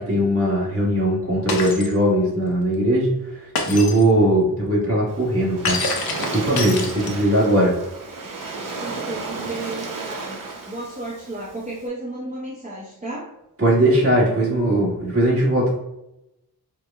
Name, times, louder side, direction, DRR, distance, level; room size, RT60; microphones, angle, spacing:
voice 1, 0.0-5.8 6.2-7.7 13.6-15.7, right 1 dB, 35° right, -5 dB, 1.4 m, -19 dB
Shatter, 1.5-1.9 3.5-4.0 5.6-7.4, left 3 dB, 65° left, 0.7 m, -26 dB
Waves surf, 5.1-11.9, right 3 dB, 55° right, 0.7 m, -33 dB
voice 2, 8.4-13.3, right 2 dB, 20° right, -5 dB, 0.7 m, -33 dB
4.8 x 2.1 x 3.4 m, 0.89 s
wide cardioid pair, 130°, 39 cm